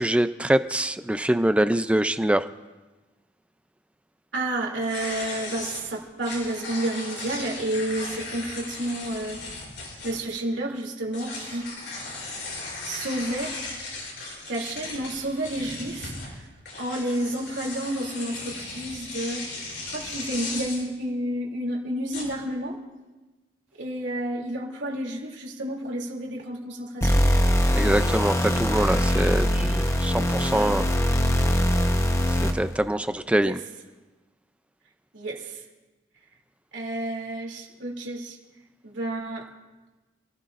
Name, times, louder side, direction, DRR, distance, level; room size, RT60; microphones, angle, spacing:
voice 1, 0.0-2.5 27.7-30.9 32.3-33.6, right 1 dB, 5° right, 11 dB, 0.4 m, -24 dB
voice 2, 4.3-9.4 10.0-11.7 12.8-13.5 14.5-16.1 16.8-19.5 19.8-22.8 23.8-27.3 33.4-33.6 35.1-35.6 36.7-38.4 38.8-39.5, right 1 dB, 80° right, -1 dB, 2.8 m, -30 dB
sound 1, 4.8-10.4 11.1-20.9 22.1-22.5, left 3 dB, 80° left, 6.3 m, -37 dB
sound 2, 27.0-32.8, equal, 15° left, 0.9 m, -22 dB
27.5 x 16.5 x 2.5 m, 1.2 s
head